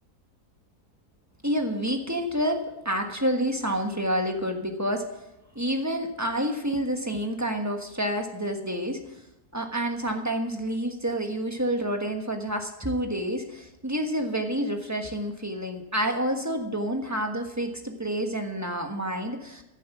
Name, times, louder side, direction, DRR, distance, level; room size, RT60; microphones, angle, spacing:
voice 1, 1.4-5.0 5.5-9.0 9.5-19.6, equal, 10° right, 4 dB, 1.2 m, -28 dB
14.5 x 7.6 x 7.3 m, 0.90 s
omnidirectional pair, 1.7 m